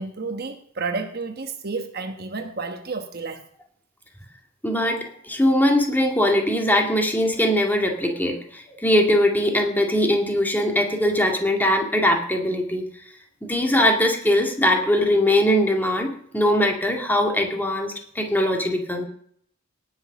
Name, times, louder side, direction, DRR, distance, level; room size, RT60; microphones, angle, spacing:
voice 1, 0.0-3.4, right 4 dB, 50° right, 6 dB, 1.3 m, -31 dB
voice 2, 4.6-12.8 13.5-19.1, left 1 dB, 10° left, 2 dB, 2.1 m, -21 dB
18.0 x 6.5 x 6.0 m, 0.63 s
head